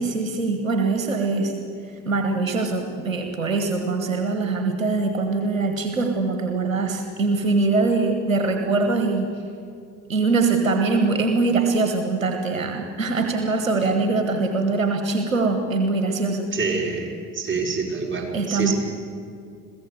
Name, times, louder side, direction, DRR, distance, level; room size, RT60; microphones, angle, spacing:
voice 1, 0.0-1.5 2.0-9.3 10.1-16.5 18.3-18.7, right 3 dB, 90° right, 5 dB, 1.4 m, -23 dB
voice 2, 16.5-18.7, right 4 dB, 30° right, 0 dB, 5.0 m, -26 dB
22.0 x 15.5 x 8.1 m, 2.4 s
figure-of-eight pair, 55°, 39 cm